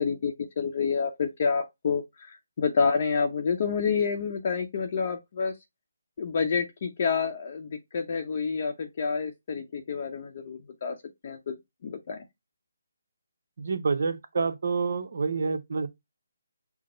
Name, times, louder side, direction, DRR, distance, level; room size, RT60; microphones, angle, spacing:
voice 1, 0.0-5.5 6.2-11.0 11.2-11.5 11.8-12.2, left 5 dB, 45° left, 0.7 m, -28 dB
voice 2, 13.6-15.9, right 4 dB, 60° right, 0.8 m, -28 dB
6.0 x 2.0 x 3.8 m
hypercardioid pair, 160°, 0 cm